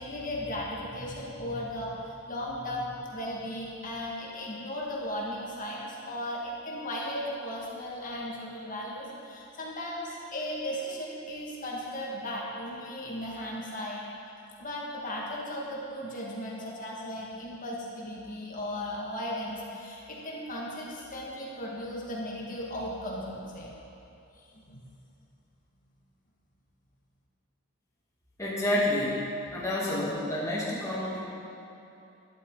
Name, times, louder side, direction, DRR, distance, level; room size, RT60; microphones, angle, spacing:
voice 1, 0.0-14.0 14.6-23.7 24.5-24.8, left 1 dB, 35° left, -4 dB, 2.0 m, -36 dB
voice 2, 28.4-31.2, left 1 dB, 15° left, -7 dB, 2.2 m, -29 dB
12.5 x 11.5 x 4.0 m, 2.8 s
head